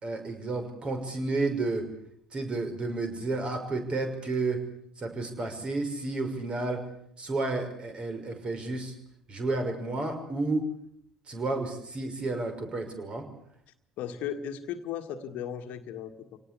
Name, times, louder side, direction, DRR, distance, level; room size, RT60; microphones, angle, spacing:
voice 1, 0.0-1.9 2.3-4.6 5.0-6.8 7.2-8.9 9.3-10.6 11.3-13.2, right 3 dB, 30° right, 6 dB, 5.9 m, -31 dB
voice 2, 14.0-16.4, left 9 dB, 50° left, 8 dB, 1.8 m, -36 dB
26.5 x 18.5 x 8.4 m, 0.69 s
figure-of-eight pair, 65°, 3 cm